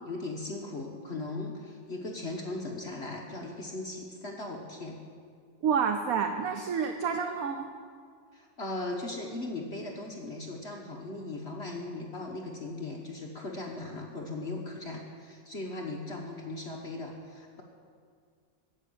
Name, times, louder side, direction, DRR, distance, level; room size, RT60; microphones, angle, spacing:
voice 1, 0.0-5.0 8.3-17.6, left 2 dB, 40° left, 0 dB, 1.2 m, -38 dB
voice 2, 5.6-7.7, right 6 dB, 65° right, 6 dB, 1.0 m, -29 dB
10.5 x 8.2 x 8.6 m, 2.2 s
omnidirectional pair, 1.9 m